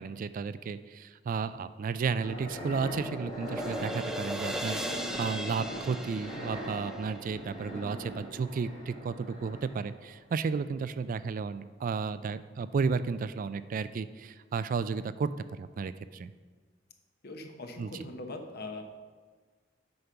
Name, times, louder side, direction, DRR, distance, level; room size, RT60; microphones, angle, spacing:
voice 1, 0.0-16.3 17.8-17.9, right 5 dB, 45° right, 14 dB, 0.3 m, -33 dB
sound 1, 2.0-10.0, equal, 35° left, 2.5 m, -41 dB
sound 2, 2.5-8.3, equal, 5° right, 0.6 m, -39 dB
voice 2, 17.2-18.9, left 2 dB, 55° left, 4 dB, 1.0 m, -41 dB
8.0 x 5.3 x 5.7 m, 1.5 s
head